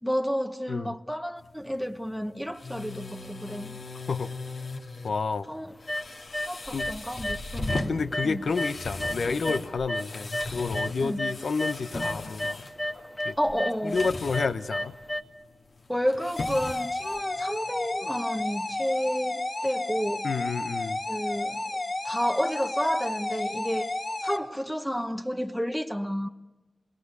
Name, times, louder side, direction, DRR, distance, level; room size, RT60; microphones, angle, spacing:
voice 1, 0.0-3.8 5.5-5.7 6.5-8.0 8.2-8.4 11.0-11.2 13.4-14.1 15.9-20.2 21.1-23.9 24.2-26.3, equal, ahead, 0.9 m, -31 dB
sound 1, 1.4-17.6, left 2 dB, 60° left, 1.9 m, -39 dB
voice 2, 5.0-5.5 6.7-6.9 7.9-12.6 13.2-13.4 13.8-14.9 20.2-21.0, left 4 dB, 80° left, 0.9 m, -30 dB
sound 2, 5.9-6.5 6.8-7.4 7.7-10.9 11.2-15.2, left 1 dB, 20° left, 2.1 m, -31 dB
sound 3, 16.4-24.4, left 2 dB, 40° left, 1.8 m, -32 dB
27.5 x 21.0 x 8.2 m
wide cardioid pair, 105°, 0 cm